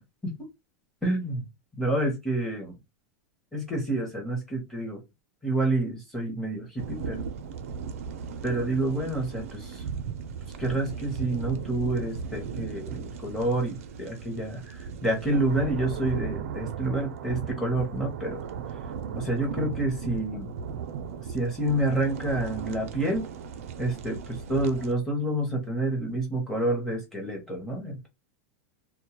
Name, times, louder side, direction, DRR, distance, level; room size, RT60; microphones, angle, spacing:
voice 1, 1.0-1.4 1.8-2.7 3.5-5.0 5.4-7.2 8.4-9.8 10.6-18.4 19.1-20.5 21.3-23.2 23.8-28.1, right 1 dB, 5° left, 0.7 m, -28 dB
sound 1, 6.8-24.9, right 7 dB, 70° right, 0.4 m, -37 dB
2.2 x 2.1 x 2.9 m
supercardioid pair, 170°, 8 cm